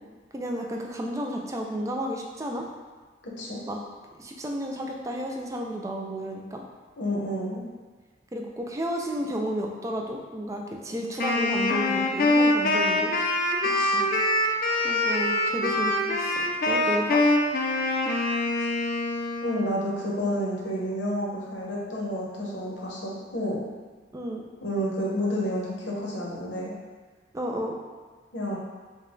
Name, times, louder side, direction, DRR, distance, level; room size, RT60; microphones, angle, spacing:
voice 1, 0.3-2.7 3.7-3.8 4.2-6.6 8.3-13.1 14.8-17.2 24.1-24.5 27.3-27.8, equal, 15° right, 1 dB, 0.4 m, -32 dB
voice 2, 7.0-7.6 13.7-14.1 18.6-18.7 19.4-23.7 24.6-26.7 28.3-28.6, equal, 75° left, -4 dB, 1.0 m, -30 dB
Wind instrument woodwind instrument, 11.2-19.6, left 2 dB, 50° left, 0.4 m, -24 dB
5.3 x 2.3 x 3.7 m, 1.4 s
head